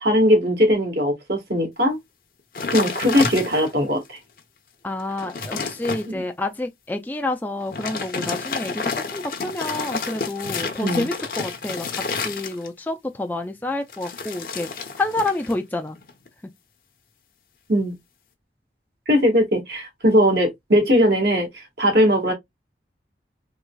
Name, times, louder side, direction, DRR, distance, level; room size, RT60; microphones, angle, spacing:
voice 1, 0.0-2.0 2.7-4.2 6.0-6.2 10.8-11.0 17.7-17.9 19.1-22.3, equal, 65° right, 1.4 m, -19 dB
sound 1, 2.6-3.9 4.4-4.5 4.9-6.1 7.6-12.9 13.9-15.6 15.9-16.3, left 4 dB, 50° left, 0.7 m, -30 dB
voice 2, 4.8-14.7 15.0-16.0, left 2 dB, 10° left, 0.3 m, -28 dB
3.8 x 3.0 x 2.2 m
head